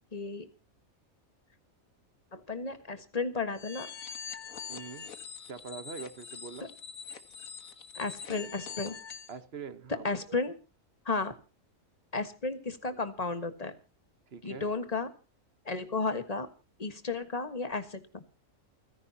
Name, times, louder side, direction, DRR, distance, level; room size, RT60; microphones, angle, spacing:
voice 1, 0.1-0.5 2.3-3.9 7.9-9.0 10.0-10.6 11.0-11.3 12.1-13.7 14.4-15.1 15.6-16.5 16.8-18.2, left 3 dB, 30° left, 10 dB, 1.5 m, -33 dB
sound 1, 3.6-9.4, left 6 dB, 85° left, 1.7 m, -44 dB
voice 2, 4.7-5.1 5.5-6.7 9.3-10.4 14.3-14.7, right 5 dB, 50° right, 12 dB, 1.3 m, -43 dB
29.0 x 10.5 x 2.8 m, 0.33 s
omnidirectional pair, 1.4 m